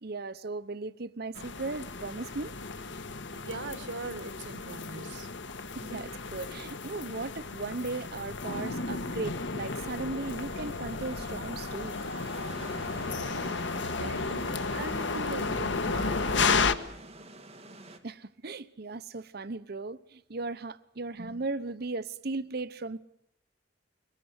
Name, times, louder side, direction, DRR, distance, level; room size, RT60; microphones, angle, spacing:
voice 1, 0.0-2.5 5.7-12.0 18.0-23.0, right 3 dB, 55° right, 0.8 m, -37 dB
sound 1, 1.4-16.7, left 4 dB, 75° left, 1.4 m, -33 dB
voice 2, 3.3-5.3 13.0-13.7 14.0-16.7 21.1-21.3, right 2 dB, 80° right, 1.9 m, -41 dB
sound 2, 10.1-18.0, right 2 dB, 35° right, 2.7 m, -49 dB
23.5 x 20.5 x 8.1 m
head